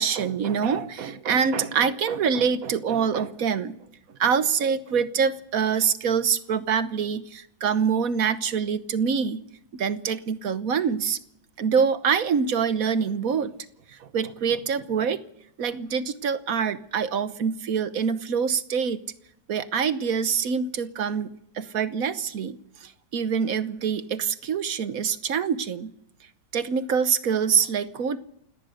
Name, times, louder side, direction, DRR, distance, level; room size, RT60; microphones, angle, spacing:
voice 1, 0.0-3.7 4.2-9.4 9.7-11.2 11.6-13.5 13.9-15.2 15.6-19.0 19.5-25.9 26.5-28.2, right 6 dB, 65° right, 13 dB, 1.4 m, -25 dB
28.0 x 18.0 x 6.6 m, 0.76 s
omnidirectional pair, 1.7 m